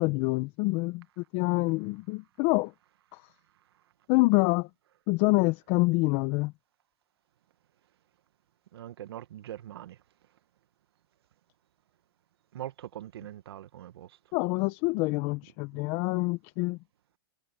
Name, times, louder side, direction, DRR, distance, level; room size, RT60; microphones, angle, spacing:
voice 1, 0.0-2.7 3.1-3.2 4.1-4.7 5.1-6.5 14.3-16.8, left 24 dB, 45° left, 1.3 m, -26 dB
voice 2, 8.7-10.0 12.5-14.1, right 12 dB, 75° right, 1.8 m, -42 dB
hypercardioid pair, 125°, 13 cm